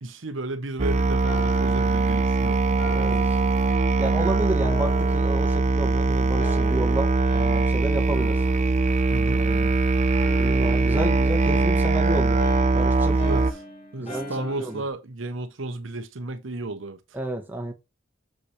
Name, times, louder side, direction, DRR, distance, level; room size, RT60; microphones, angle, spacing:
voice 1, 0.0-3.0 9.1-9.5 13.2-13.4 13.9-17.0, right 2 dB, 70° right, 0.9 m, -33 dB
Musical instrument, 0.8-13.5, right 3 dB, 35° right, 0.4 m, -21 dB
sound 1, 1.2-4.2 4.6-6.0 6.4-7.8 8.1-9.8 10.2-14.9, left 1 dB, 30° left, 1.8 m, -41 dB
voice 2, 2.9-3.4 4.0-8.5 9.3-9.7 10.4-12.4 12.7-13.2 14.0-14.8 17.1-17.7, right 1 dB, 10° right, 1.3 m, -31 dB
6.8 x 5.6 x 3.2 m
head